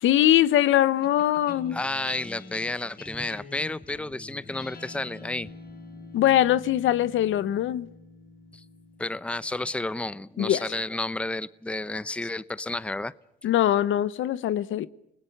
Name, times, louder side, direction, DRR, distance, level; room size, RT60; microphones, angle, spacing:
voice 1, 0.0-1.8 6.1-7.9 10.4-10.7 13.4-14.9, left 12 dB, 80° left, 1.0 m, -22 dB
sound 1, 1.0-11.6, left 3 dB, 50° left, 6.9 m, -46 dB
voice 2, 1.7-5.5 8.5-8.6 9.0-13.1, left 2 dB, 5° left, 0.8 m, -31 dB
30.0 x 19.5 x 5.9 m
cardioid pair, 90°, 20 cm